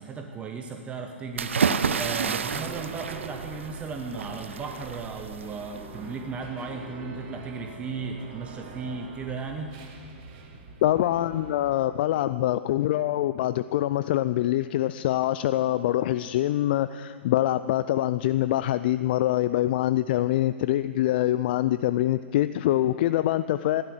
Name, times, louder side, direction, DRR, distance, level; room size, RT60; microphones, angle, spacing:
voice 1, 0.0-9.8, right 4 dB, 20° right, 4 dB, 1.0 m, -36 dB
sound 1, 1.4-6.2, right 6 dB, 75° right, 0.7 m, -30 dB
sound 2, 2.5-11.7, right 4 dB, 45° right, 2.0 m, -43 dB
voice 2, 10.8-23.8, left 13 dB, 50° left, 14 dB, 0.4 m, -24 dB
14.5 x 12.0 x 6.3 m, 2.1 s
hypercardioid pair, 115°, 7 cm